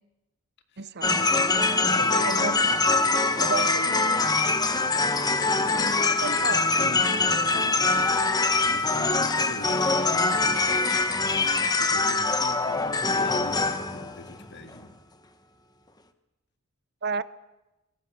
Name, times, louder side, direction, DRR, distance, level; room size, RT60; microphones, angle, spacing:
voice 1, 0.8-1.3 2.2-2.7 3.4-3.9 6.2-6.7 17.0-17.2, right 5 dB, 50° right, 0.7 m, -32 dB
sound 1, 1.0-14.8, left 3 dB, 20° left, 1.1 m, -23 dB
voice 2, 1.8-2.6 5.5-7.5 8.7-14.9, left 2 dB, 50° left, 2.0 m, -41 dB
24.5 x 22.5 x 6.3 m
head